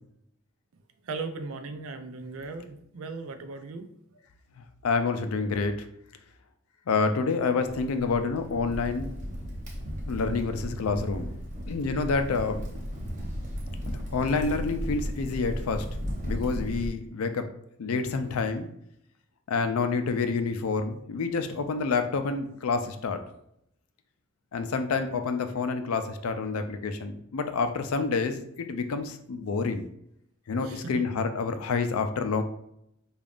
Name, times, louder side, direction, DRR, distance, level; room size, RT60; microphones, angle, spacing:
voice 1, 1.0-3.9 30.6-31.1, right 3 dB, 75° right, 8 dB, 0.4 m, -37 dB
voice 2, 4.6-5.9 6.9-9.1 10.0-11.3 11.7-12.6 13.9-15.9 16.2-17.5 17.8-18.7 19.5-23.2 24.5-29.9 30.5-32.4, left 4 dB, 85° left, 8 dB, 0.4 m, -28 dB
Crackle, 7.6-16.9, equal, 35° right, 0.7 m, -35 dB
5.1 x 2.4 x 2.4 m, 0.74 s
head